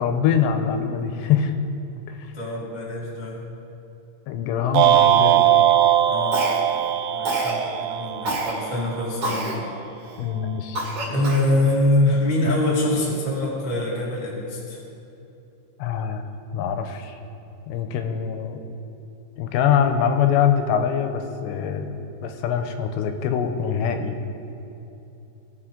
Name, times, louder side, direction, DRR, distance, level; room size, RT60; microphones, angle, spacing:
voice 1, 0.0-1.5 4.3-5.6 10.2-10.8 15.8-16.2 16.5-17.2 17.7-18.6 19.4-24.2, left 8 dB, 85° left, 6 dB, 2.9 m, -23 dB
voice 2, 2.3-3.6 6.0-6.5 7.1-9.7 11.1-14.8, left 1 dB, 40° left, -5 dB, 0.6 m, -24 dB
sound 1, 4.7-9.1, right 11 dB, 90° right, 2.8 m, -20 dB
Cough, 6.3-6.8 7.2-7.6 8.2-8.5 9.2-9.6 10.1-10.2 10.7-11.5, right 2 dB, 45° right, 2.3 m, -27 dB
19.0 x 6.4 x 3.8 m, 2.9 s
omnidirectional pair, 5.0 m